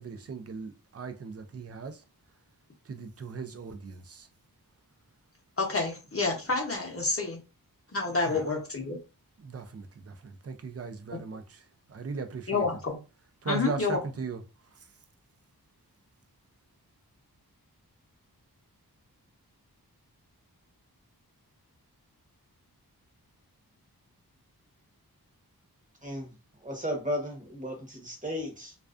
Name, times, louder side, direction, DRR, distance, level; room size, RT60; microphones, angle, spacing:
voice 1, 0.0-2.0 2.9-4.3 8.2-8.4 9.4-11.6 11.9-12.6 13.4-14.4, right 5 dB, 40° right, 0.4 m, -38 dB
voice 2, 5.6-7.4 7.9-9.0 11.1-11.2 12.5-13.0 13.4-14.0, left 3 dB, 35° left, 0.8 m, -29 dB
voice 3, 26.0-26.3 26.6-28.7, equal, 20° right, 0.8 m, -34 dB
2.4 x 2.2 x 2.4 m
wide cardioid pair, 70°, 38 cm